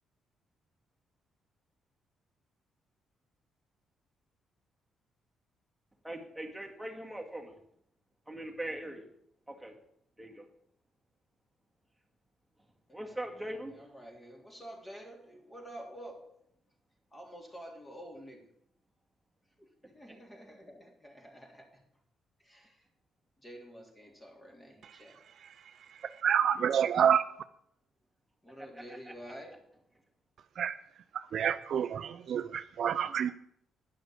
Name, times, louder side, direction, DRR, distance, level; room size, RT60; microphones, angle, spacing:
voice 1, 6.0-7.6 8.3-9.1 9.5-9.8 10.2-10.5 12.9-13.9 19.8-20.2 28.5-29.3, right 1 dB, 5° right, 1 dB, 2.1 m, -42 dB
voice 2, 13.8-16.4 17.1-18.5 19.6-21.8 22.4-22.9 23.4-25.2 28.4-29.6, equal, 20° left, 1 dB, 3.4 m, -49 dB
voice 3, 26.0-27.3 30.6-30.7 31.1-33.3, right 8 dB, 60° right, 11 dB, 0.5 m, -28 dB
10.5 x 6.0 x 8.7 m, 0.70 s
cardioid pair, 90°, 0 cm